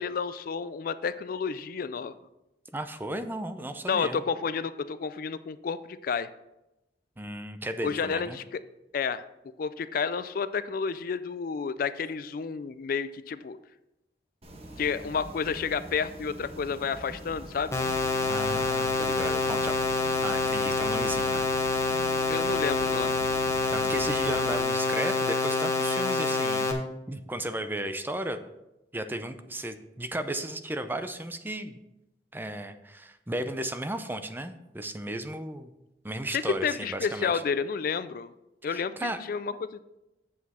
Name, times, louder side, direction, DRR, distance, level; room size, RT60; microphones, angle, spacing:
voice 1, 0.0-2.1 3.9-6.3 7.8-8.6 8.9-9.2 9.6-13.6 14.8-17.8 22.3-23.2 36.3-38.3 38.6-39.8, left 6 dB, 55° left, 14 dB, 0.4 m, -30 dB
voice 2, 2.7-4.2 7.2-8.4 18.3-19.7 20.2-21.5 23.7-26.7 27.1-28.4 28.9-31.8 32.3-35.7 36.0-37.3 38.6-39.2, right 1 dB, 10° right, 9 dB, 0.5 m, -34 dB
sound 1, 14.4-24.6, right 1 dB, 35° right, 1.2 m, -44 dB
sound 2, 17.7-26.7, left 3 dB, 15° left, 1.0 m, -27 dB
8.3 x 7.3 x 4.2 m, 0.93 s
head